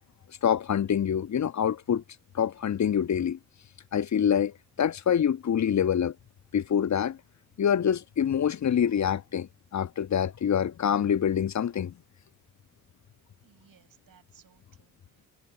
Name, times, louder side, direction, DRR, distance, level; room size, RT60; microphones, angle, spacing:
voice 1, 0.4-2.0 2.3-3.4 3.9-6.1 6.5-7.2 7.6-11.9, left 8 dB, 40° left, 1.5 m, -26 dB
voice 2, 13.4-15.3, right 8 dB, 50° right, 7.4 m, -61 dB
figure-of-eight pair, 40°, 44 cm